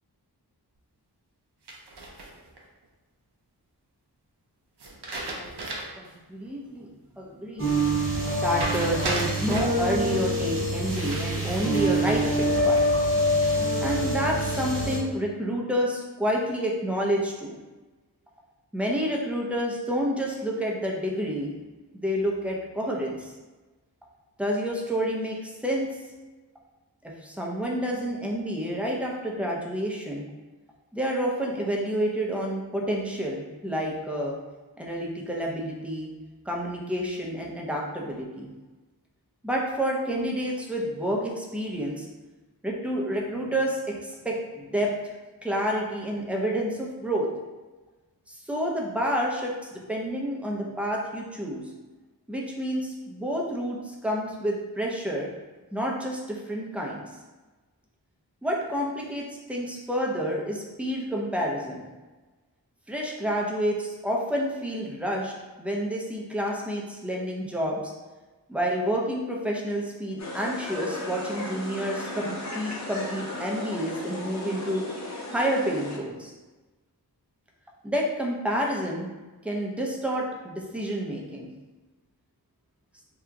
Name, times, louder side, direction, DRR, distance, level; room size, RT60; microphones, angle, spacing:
sound 1, 1.7-2.6 4.8-6.1 6.5-6.6 8.5-9.8 10.9-12.1 12.5-13.1, right 2 dB, 90° right, 0.6 m, -35 dB
voice 1, 5.3-5.7 6.0-6.9 7.2-7.8 8.4-12.8 13.8-17.6 18.7-21.5 22.0-23.3 24.4-25.9 27.0-30.3 30.9-34.4 34.8-36.1 36.5-38.5 39.4-42.1 42.6-44.9 45.4-47.3 48.3-51.6 52.3-55.3 55.7-57.0 58.4-61.9 62.9-65.3 65.6-67.9 68.5-74.8 75.3-76.3 77.8-79.1 79.4-81.5, equal, 5° right, -2 dB, 0.6 m, -29 dB
sound 2, 7.6-15.0, equal, 35° right, 0.9 m, -25 dB
sound 3, 70.2-76.0, left 2 dB, 45° left, 0.6 m, -36 dB
2.9 x 2.3 x 3.5 m, 1.2 s
wide cardioid pair, 55°, 39 cm